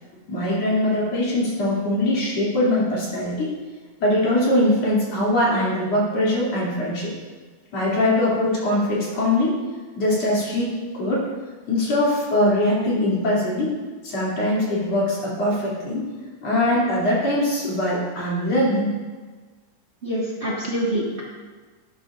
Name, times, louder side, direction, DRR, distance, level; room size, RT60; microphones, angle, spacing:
voice 1, 0.3-3.5 4.0-7.1 7.7-9.6 10.0-11.3 11.7-13.7 14.0-16.1 16.4-19.0, left 1 dB, 60° left, -6 dB, 3.9 m, -22 dB
voice 2, 20.0-21.2, right 1 dB, 30° right, -5 dB, 1.3 m, -26 dB
12.0 x 11.5 x 2.5 m, 1.4 s
omnidirectional pair, 3.3 m